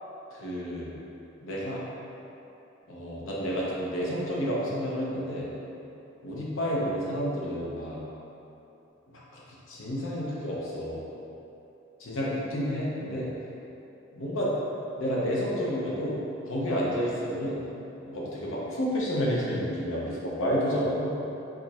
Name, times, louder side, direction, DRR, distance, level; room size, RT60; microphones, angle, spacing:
voice 1, 0.3-0.9 1.4-1.8 2.9-5.5 6.2-8.0 9.1-9.4 9.7-11.0 12.0-13.3 14.1-14.6 15.0-16.2 16.4-17.6 18.1-21.2, equal, 85° left, -5 dB, 0.8 m, -30 dB
4.8 x 2.6 x 3.0 m, 2.9 s
head